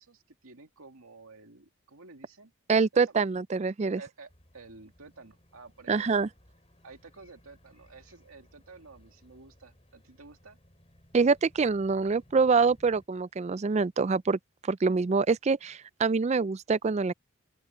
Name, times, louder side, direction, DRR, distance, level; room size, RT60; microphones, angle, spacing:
voice 1, 0.0-2.5 3.0-3.2 4.0-6.3 6.8-10.6, right 3 dB, 85° right, 2.3 m, -51 dB
voice 2, 2.7-4.0 5.9-6.3 11.1-17.1, right 4 dB, 30° right, 0.3 m, -25 dB
sound 1, 4.3-13.1, equal, 30° left, 5.1 m, -60 dB
open air
head